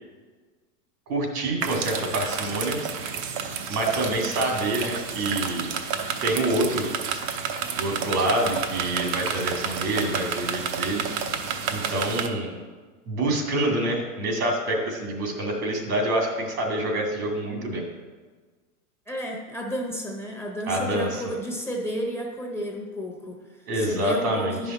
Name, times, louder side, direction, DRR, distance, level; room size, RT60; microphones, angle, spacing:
voice 1, 1.1-2.8 3.7-5.8 6.2-6.9 7.8-11.0 11.7-12.5 13.1-17.8 20.7-21.2 23.7-24.7, right 1 dB, 75° right, 2 dB, 2.3 m, -26 dB
sound 1, 1.6-12.3, right 6 dB, 45° right, 0.9 m, -30 dB
voice 2, 19.1-24.7, equal, 5° left, -1 dB, 1.0 m, -32 dB
10.5 x 5.5 x 4.2 m, 1.4 s
hypercardioid pair, 120°, 45 cm